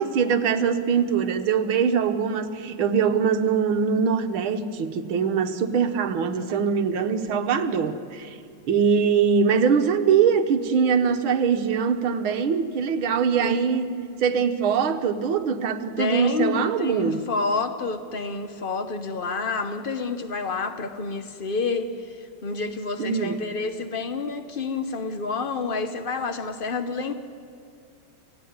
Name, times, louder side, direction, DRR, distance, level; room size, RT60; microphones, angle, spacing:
voice 1, 0.0-8.4 8.6-17.2 23.0-23.4, right 6 dB, 70° right, 7 dB, 2.0 m, -22 dB
voice 2, 16.0-27.1, left 4 dB, 70° left, 8 dB, 0.5 m, -29 dB
29.0 x 17.5 x 9.5 m, 2.5 s
omnidirectional pair, 2.4 m